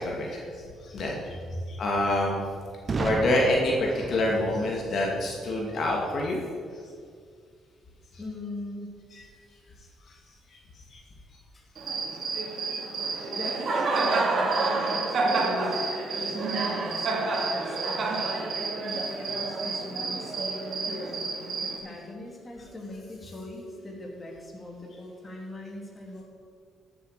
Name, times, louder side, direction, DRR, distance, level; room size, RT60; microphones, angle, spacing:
voice 1, 0.0-1.4 1.7-2.4 3.0-6.4 9.1-9.3 10.9-11.0 13.1-13.3 16.3-16.4 20.9-21.0, left 1 dB, 60° left, -1 dB, 2.3 m, -27 dB
voice 2, 1.2-1.6 8.2-9.0 11.5-11.6 13.3-18.5 18.8-26.2, left 1 dB, 25° left, -1 dB, 3.2 m, -41 dB
Boom, 2.9-6.7, right 4 dB, 40° right, 0.6 m, -36 dB
Cricket, 11.8-21.8, right 3 dB, 55° right, 2.4 m, -29 dB
14.0 x 7.7 x 6.7 m, 2.1 s
cardioid pair, 90°, 0 cm